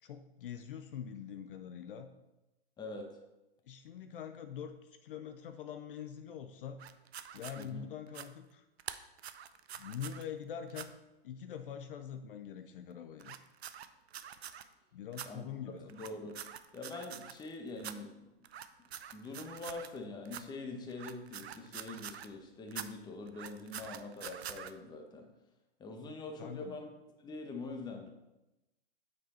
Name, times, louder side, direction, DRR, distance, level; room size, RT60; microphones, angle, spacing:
voice 1, 0.0-2.1 3.7-6.8 7.3-8.6 9.8-10.9 11.2-13.4 14.9-15.9 26.4-26.8, left 8 dB, 60° left, 8 dB, 0.7 m, -44 dB
voice 2, 2.8-3.1 7.6-7.9 15.3-15.5 15.9-16.4 16.7-18.2 19.1-25.3 25.8-26.9 27.2-28.1, left 3 dB, 15° left, 3 dB, 1.1 m, -44 dB
sound 1, 6.8-7.6 8.1-8.3 8.8-10.2 10.7-10.9 13.2-14.6 15.1-15.3 15.9-17.5 17.8-17.9 18.4-20.0 20.2-20.4 20.9-22.3 22.7-22.9 23.3-24.7, right 9 dB, 80° right, 0.7 m, -45 dB
8.6 x 6.3 x 4.3 m, 0.98 s
hypercardioid pair, 130°, 31 cm